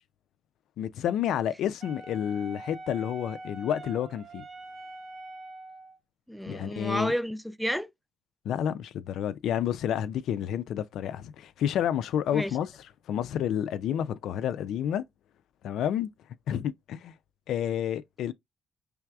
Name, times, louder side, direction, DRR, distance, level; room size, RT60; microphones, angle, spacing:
voice 1, 0.8-4.4 6.5-7.1 8.5-12.7 13.1-15.0 15.6-16.1 16.5-17.1 17.5-18.3, left 10 dB, 80° left, 0.4 m, -30 dB
Wind instrument woodwind instrument, 1.8-6.0, right 2 dB, 45° right, 1.1 m, -44 dB
voice 2, 6.3-7.9 12.3-12.6, equal, ahead, 0.4 m, -31 dB
4.6 x 3.4 x 2.3 m
cardioid pair, 90°, 0 cm